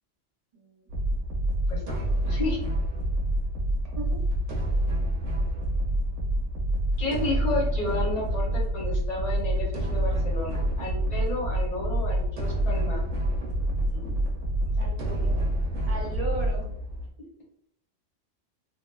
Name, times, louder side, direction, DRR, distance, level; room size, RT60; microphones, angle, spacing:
voice 1, 0.5-0.8 1.7-2.3 3.8-4.3 14.8-15.5 15.9-16.7, right 2 dB, 45° right, -2 dB, 0.5 m, -38 dB
sound 1, 0.9-17.1, right 1 dB, 80° right, 0.9 m, -27 dB
voice 2, 1.7-2.6 7.0-13.0 13.9-14.2 14.6-14.7, left 2 dB, 40° left, -3 dB, 0.8 m, -32 dB
2.7 x 2.1 x 2.2 m, 0.71 s
omnidirectional pair, 1.2 m